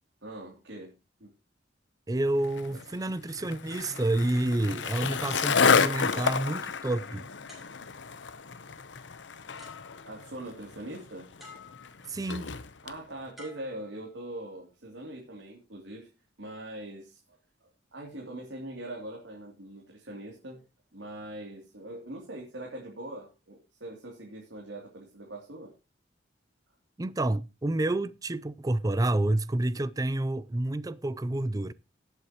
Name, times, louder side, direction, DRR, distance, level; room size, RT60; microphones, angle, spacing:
voice 1, 0.2-0.9 1.2-1.3 2.7-2.8 10.0-11.3 12.8-16.1 16.4-17.4 17.9-20.6 20.9-25.7, right 1 dB, 75° right, 2.8 m, -42 dB
voice 2, 2.1-7.3 12.1-12.5 27.0-31.7, right 1 dB, 20° right, 0.5 m, -29 dB
Skateboard, 2.4-13.0, left 5 dB, 75° left, 0.8 m, -30 dB
sound 1, 3.7-4.9 5.4-6.5 7.5-8.2 9.2-9.3 9.6-10.4 11.4-12.2 13.4-14.5 15.2-15.4, left 2 dB, ahead, 5.7 m, -53 dB
18.5 x 8.1 x 3.0 m
head